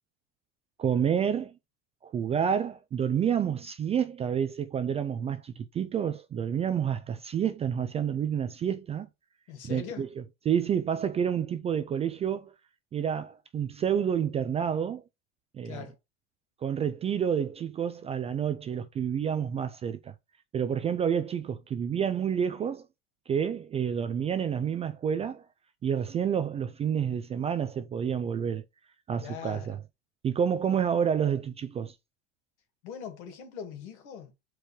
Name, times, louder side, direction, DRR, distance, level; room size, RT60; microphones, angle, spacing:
voice 1, 0.8-1.5 2.0-9.1 9.7-10.1 10.5-12.5 12.9-15.0 15.5-15.7 16.6-20.1 20.5-22.9 23.3-25.4 25.8-28.6 29.1-29.8 30.2-31.9, right 8 dB, 20° right, 0.3 m, -29 dB
voice 2, 9.5-10.1 15.6-16.0 29.2-29.8 32.8-34.3, left 7 dB, 75° left, 2.6 m, -41 dB
5.0 x 4.6 x 4.5 m
supercardioid pair, 130°, 35 cm